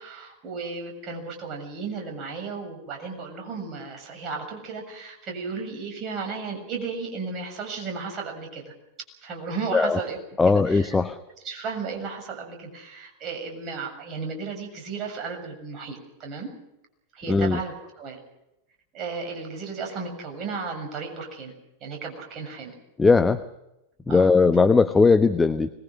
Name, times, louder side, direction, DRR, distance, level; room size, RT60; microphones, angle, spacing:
voice 1, 0.0-8.7 9.2-10.2 10.5-10.9 11.4-16.5 17.1-18.2 18.9-21.5 21.8-22.7 24.1-24.3, right 4 dB, 35° right, 3 dB, 7.2 m, -34 dB
voice 2, 10.4-11.2 17.3-17.6 23.0-23.4 24.1-25.7, left 4 dB, 10° left, 11 dB, 1.0 m, -19 dB
25.5 x 21.5 x 6.3 m, 0.89 s
figure-of-eight pair, 90°, 0 cm